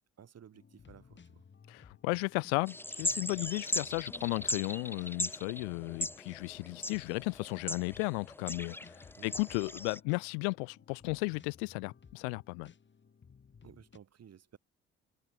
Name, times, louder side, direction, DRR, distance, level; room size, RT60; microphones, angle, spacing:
voice 1, 0.2-1.4 9.2-9.4 13.6-14.6, right 8 dB, 50° right, 3.9 m, -55 dB
sound 1, 0.5-14.0, left 6 dB, 35° left, 2.6 m, -58 dB
voice 2, 1.7-12.7, left 36 dB, 75° left, 0.5 m, -35 dB
sound 2, 2.7-10.0, left 1 dB, 5° left, 1.3 m, -38 dB
hypercardioid pair, 50°, 33 cm